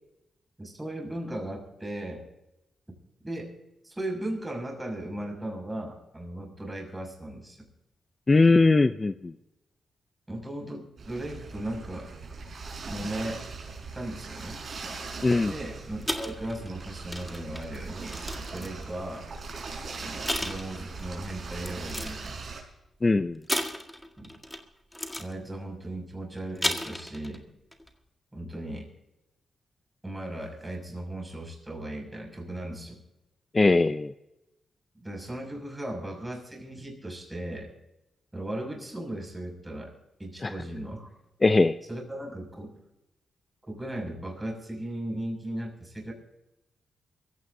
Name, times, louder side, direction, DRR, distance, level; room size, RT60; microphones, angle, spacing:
voice 1, 0.6-2.2 3.2-3.5 3.8-7.7 10.3-12.1 12.8-13.4 13.9-14.6 15.5-19.3 20.0-22.4 24.2-24.3 25.2-27.5 28.3-28.9 30.0-33.0 34.9-37.7 38.3-39.9 40.2-41.1 41.9-42.7 43.7-46.1, right 1 dB, 15° right, 1 dB, 6.4 m, -37 dB
voice 2, 8.3-9.3 15.2-15.5 23.0-23.4 33.5-34.1 40.4-40.5 41.4-41.8, left 3 dB, 30° left, 11 dB, 0.5 m, -20 dB
sound 1, 11.0-22.6, right 4 dB, 50° right, 5.6 m, -40 dB
sound 2, 16.0-18.9 19.7-19.8 20.3-21.1 21.6-22.3 23.5-24.6 24.9-25.3 26.4-27.4 27.7-27.9, left 1 dB, 5° left, 1.9 m, -33 dB
24.0 x 16.0 x 2.7 m, 0.92 s
cardioid pair, 90°, 0 cm